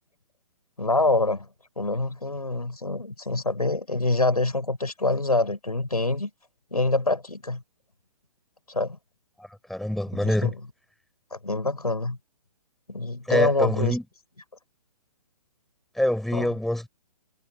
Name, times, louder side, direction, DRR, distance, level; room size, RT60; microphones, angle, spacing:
voice 1, 0.8-1.5 1.8-6.3 6.7-7.6 8.7-9.0 10.1-10.6 11.3-12.2 12.9-14.0 16.3-16.5, left 2 dB, 85° left, 6.3 m, -25 dB
voice 2, 9.4-10.5 13.3-14.0 16.0-16.9, left 1 dB, ahead, 5.8 m, -25 dB
figure-of-eight pair, 130°, 19 cm